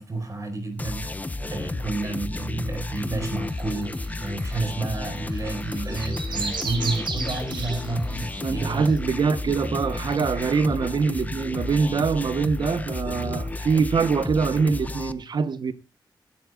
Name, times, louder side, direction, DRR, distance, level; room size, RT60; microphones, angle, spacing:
voice 1, 0.0-3.9 4.2-8.9, right 2 dB, 40° right, 4.7 m, -30 dB
sound 1, 0.8-15.1, left 2 dB, 20° left, 0.8 m, -32 dB
sound 2, 3.4-8.9, right 4 dB, 80° right, 4.0 m, -36 dB
voice 2, 8.4-15.7, right 5 dB, 65° right, 1.1 m, -24 dB
22.5 x 12.0 x 2.4 m
wide cardioid pair, 155°, 8 cm